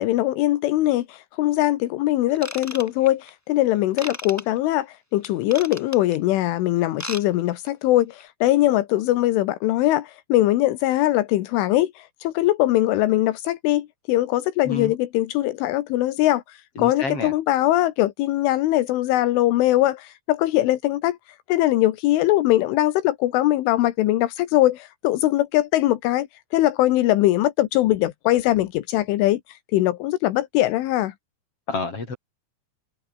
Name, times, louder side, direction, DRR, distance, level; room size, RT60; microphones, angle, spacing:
voice 1, 0.0-21.2 21.5-31.1, left 15 dB, 85° left, 3.8 m, -21 dB
Ratchet pawl / Tools, 2.3-3.3 4.0-4.4 5.2-6.2 6.8-7.2 7.5-7.7 8.2-8.3, equal, 5° left, 4.5 m, -35 dB
voice 2, 16.8-17.3 31.7-32.2, left 3 dB, 30° left, 7.5 m, -29 dB
omnidirectional pair, 5.5 m